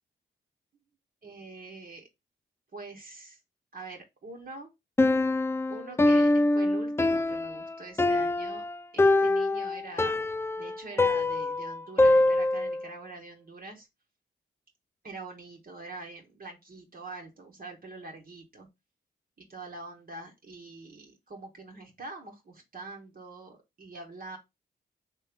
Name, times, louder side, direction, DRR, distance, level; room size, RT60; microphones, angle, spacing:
voice 1, 1.2-2.1 2.7-3.4 3.7-4.7 5.7-8.7 8.9-10.2 10.6-13.9 15.0-18.7 19.4-24.4, right 3 dB, 50° right, 1.2 m, -44 dB
Piano, 5.0-12.8, left 2 dB, 15° left, 0.3 m, -24 dB
3.0 x 3.0 x 3.5 m
supercardioid pair, 45°, 20 cm